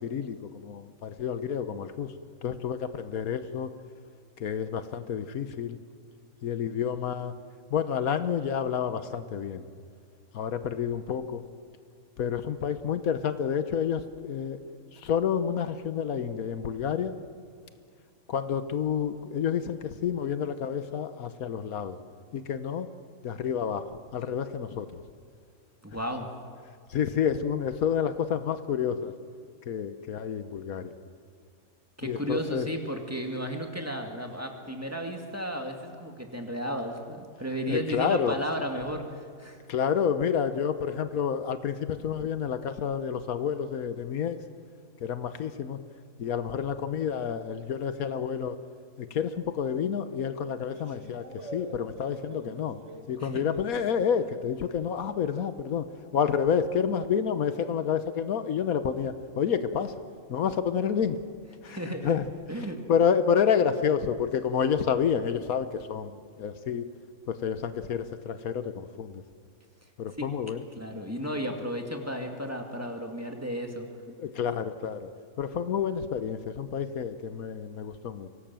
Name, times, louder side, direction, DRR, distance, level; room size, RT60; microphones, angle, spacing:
voice 1, 0.0-2.1 2.4-3.7 4.4-5.8 6.4-7.3 7.7-9.7 10.3-11.4 12.2-14.6 14.9-17.1 18.3-22.0 22.3-22.9 23.2-25.0 26.9-29.1 29.7-30.9 32.0-32.7 37.7-38.4 39.7-44.4 45.0-45.8 46.2-48.6 49.0-52.8 53.1-55.9 56.1-59.9 60.3-61.2 61.6-62.3 62.9-66.9 67.3-69.2 70.0-70.6 74.2-75.1 75.4-78.3, left 7 dB, 75° left, 11 dB, 1.4 m, -29 dB
voice 2, 25.8-26.3 32.0-39.6 53.2-53.4 61.7-62.2 62.5-62.8 70.2-70.3 70.8-73.9, equal, 10° right, 3 dB, 2.2 m, -34 dB
sound 1, 50.1-55.3 55.6-64.5, right 1 dB, 55° right, 2.1 m, -50 dB
24.0 x 18.0 x 7.6 m, 2.2 s
omnidirectional pair, 1.5 m